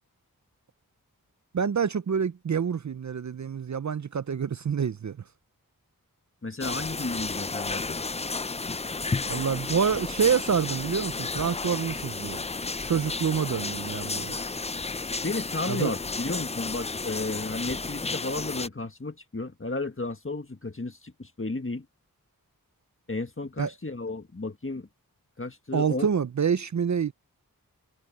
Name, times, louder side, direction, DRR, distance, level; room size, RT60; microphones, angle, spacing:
voice 1, 1.5-5.2 9.3-12.4 12.8-14.4 15.7-15.9 23.6-23.7 25.7-27.1, right 7 dB, 55° right, 0.5 m, -27 dB
voice 2, 6.4-8.0 15.2-21.8 23.1-24.9 25.4-26.1, left 2 dB, 35° left, 1.6 m, -33 dB
sound 1, 6.6-18.7, left 3 dB, 20° left, 0.3 m, -32 dB
wide cardioid pair, 55°, 36 cm